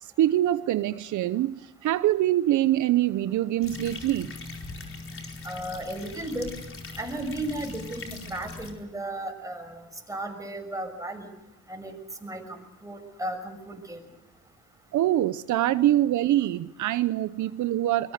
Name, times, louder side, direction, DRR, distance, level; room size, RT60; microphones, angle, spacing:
voice 1, 0.0-4.3 14.9-18.1, right 13 dB, 75° right, 14 dB, 0.8 m, -24 dB
sound 1, 3.6-8.7, left 3 dB, 45° left, 4.5 m, -41 dB
voice 2, 5.4-6.5 7.0-11.3 11.7-11.9 12.2-14.0, right 1 dB, 10° right, 4 dB, 6.5 m, -35 dB
24.0 x 21.5 x 6.7 m, 1.0 s
cardioid pair, 90°, 30 cm